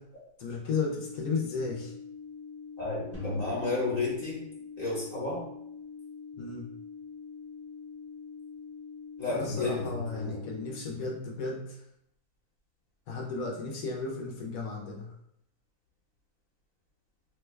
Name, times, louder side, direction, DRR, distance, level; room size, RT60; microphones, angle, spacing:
voice 1, 0.4-1.9 6.4-6.6 9.3-11.8 13.1-15.1, left 4 dB, 65° left, -2 dB, 0.9 m, -34 dB
sound 1, 0.7-10.8, left 5 dB, 70° right, 1.3 m, -45 dB
voice 2, 2.8-4.4 4.8-5.4 9.2-10.4, left 3 dB, 35° left, -6 dB, 1.0 m, -32 dB
sound 2, 3.1-5.3, left 2 dB, 15° left, 0.5 m, -42 dB
3.0 x 2.2 x 3.2 m, 0.75 s
omnidirectional pair, 2.0 m